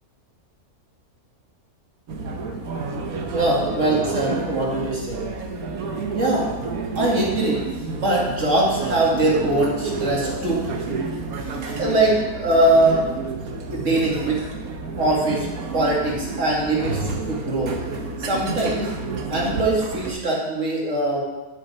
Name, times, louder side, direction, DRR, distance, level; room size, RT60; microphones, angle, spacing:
sound 1, 2.1-20.1, right 3 dB, 75° right, 1.4 m, -30 dB
voice 1, 3.3-5.2 6.1-6.5 7.0-7.6 7.9-10.8 11.4-13.0 13.7-14.4 15.0-15.5 15.7-17.7 18.2-18.9 19.3-21.2, right 2 dB, 55° right, -3 dB, 2.5 m, -22 dB
9.8 x 8.4 x 4.3 m, 1.1 s
omnidirectional pair, 1.6 m